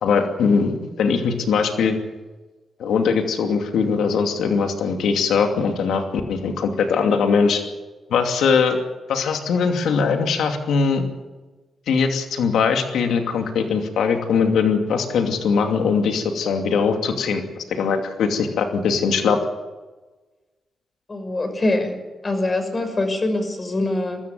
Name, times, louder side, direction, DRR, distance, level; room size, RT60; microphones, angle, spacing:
voice 1, 0.0-2.0 2.8-7.6 8.1-8.8 9.1-11.0 11.9-19.4, left 5 dB, 90° left, 5 dB, 2.7 m, -21 dB
voice 2, 21.1-22.0 22.2-24.2, left 2 dB, 35° left, 6 dB, 6.2 m, -23 dB
23.5 x 14.0 x 9.4 m, 1.2 s
cardioid pair, 60°, 0 cm